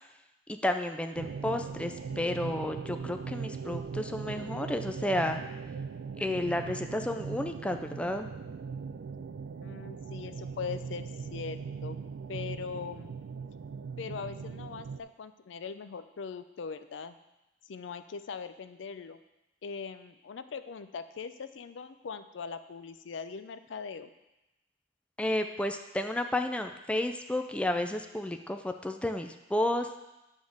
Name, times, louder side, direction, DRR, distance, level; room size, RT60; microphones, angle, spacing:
voice 1, 0.5-5.4 6.2-8.3 25.2-30.0, left 1 dB, 5° left, 6 dB, 0.3 m, -32 dB
sound 1, 1.1-15.0, right 5 dB, 85° right, 0.4 m, -40 dB
voice 2, 9.6-12.0 12.3-13.1 14.0-17.2 17.7-19.2 19.6-24.1, left 5 dB, 80° left, 11 dB, 0.4 m, -41 dB
9.2 x 3.6 x 6.4 m, 0.96 s
head